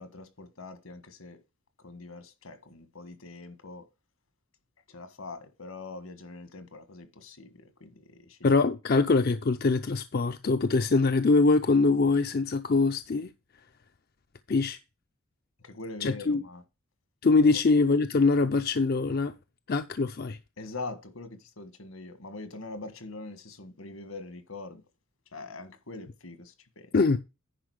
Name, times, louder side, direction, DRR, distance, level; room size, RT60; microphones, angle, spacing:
voice 1, 0.0-1.4 1.8-3.9 4.9-8.6 15.6-16.6 17.5-17.6 20.6-24.8 25.3-26.9, left 3 dB, 75° left, 1.6 m, -43 dB
voice 2, 8.4-13.3 14.5-14.8 16.0-16.4 17.2-19.3 19.7-20.4 26.9-27.2, left 3 dB, 45° left, 0.5 m, -23 dB
10.0 x 5.0 x 4.8 m
head